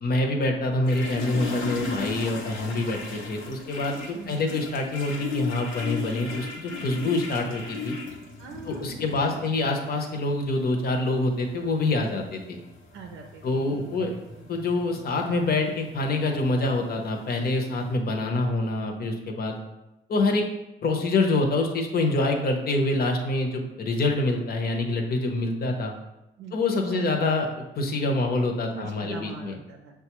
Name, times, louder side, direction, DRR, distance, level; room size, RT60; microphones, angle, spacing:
voice 1, 0.0-7.9 8.7-12.6 13.4-14.1 14.5-19.6 20.1-20.4 20.8-25.9 26.5-29.5, left 2 dB, 50° left, 2 dB, 0.8 m, -26 dB
sound 1, 0.8-17.9, left 4 dB, 85° left, 0.8 m, -37 dB
voice 2, 4.1-4.5 8.4-9.4 12.9-14.5 26.4-26.6 26.9-27.1 28.7-29.9, right 4 dB, 85° right, 2 dB, 0.5 m, -42 dB
6.3 x 2.3 x 3.0 m, 0.95 s
cardioid pair, 90°, 20 cm